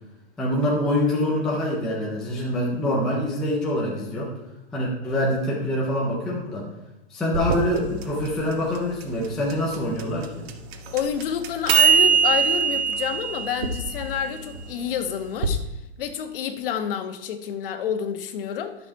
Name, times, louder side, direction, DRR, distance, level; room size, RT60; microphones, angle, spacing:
voice 1, 0.4-4.3 4.7-6.7 7.1-10.4, left 1 dB, ahead, -4 dB, 0.3 m, -25 dB
sound 1, 7.3-15.5, right 7 dB, 65° right, 1.6 m, -23 dB
voice 2, 10.9-15.6 16.0-18.8, left 8 dB, 55° left, 8 dB, 1.2 m, -28 dB
11.5 x 6.9 x 4.6 m, 1.0 s
supercardioid pair, 165°, 33 cm